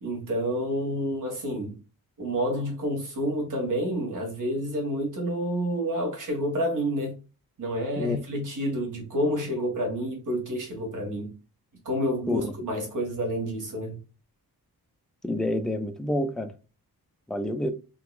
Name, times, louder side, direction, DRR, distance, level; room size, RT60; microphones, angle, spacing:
voice 1, 0.0-1.8 2.2-7.1 7.6-11.3 11.9-14.0, equal, 55° right, 1.8 m, -29 dB
voice 2, 15.2-16.5 17.3-17.7, left 1 dB, ahead, 0.3 m, -28 dB
3.8 x 2.9 x 2.4 m
wide cardioid pair, 150°, 37 cm